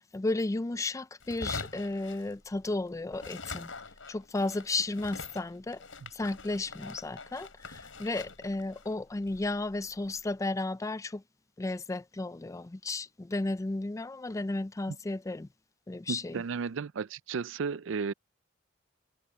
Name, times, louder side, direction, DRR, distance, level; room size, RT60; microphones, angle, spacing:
voice 1, 0.0-3.7 4.1-5.8 6.1-11.2 11.6-15.5 15.9-16.4, left 2 dB, 15° left, 0.4 m, -33 dB
sound 1, 1.2-2.8 3.1-10.3, left 3 dB, 85° left, 5.8 m, -44 dB
voice 2, 16.1-18.1, right 5 dB, 75° right, 0.4 m, -34 dB
head